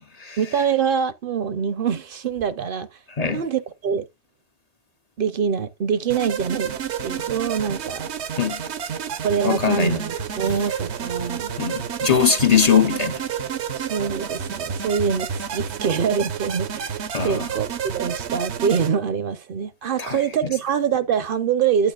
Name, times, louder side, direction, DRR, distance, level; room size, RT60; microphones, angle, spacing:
voice 1, 0.4-2.9 3.2-4.0 5.2-8.1 9.2-11.5 13.7-21.9, right 7 dB, 60° right, 0.7 m, -24 dB
sound 1, 6.1-18.9, right 7 dB, 85° right, 1.1 m, -30 dB
voice 2, 9.4-10.0 11.6-13.2 17.1-17.5 20.0-20.2, left 6 dB, 45° left, 0.6 m, -21 dB
9.0 x 8.5 x 2.3 m
omnidirectional pair, 1.1 m